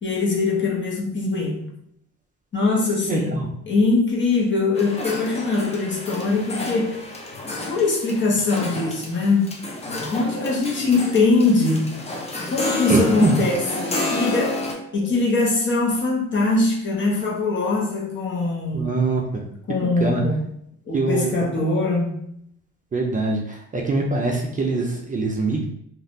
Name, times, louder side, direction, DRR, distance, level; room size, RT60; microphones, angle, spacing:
voice 1, 0.0-1.6 2.5-3.4 3.7-7.0 7.7-9.6 9.8-11.9 12.5-14.6 14.9-19.0 19.7-20.4 20.9-22.2, left 3 dB, 40° left, -2 dB, 0.9 m, -22 dB
voice 2, 3.1-3.5 12.9-13.4 18.7-19.4 19.7-20.2 20.9-21.6 22.9-25.6, right 3 dB, 25° right, 0 dB, 0.5 m, -23 dB
sound 1, 4.7-14.7, left 2 dB, 20° left, 0.6 m, -30 dB
3.2 x 2.4 x 2.6 m, 0.71 s
cardioid pair, 90°, 30 cm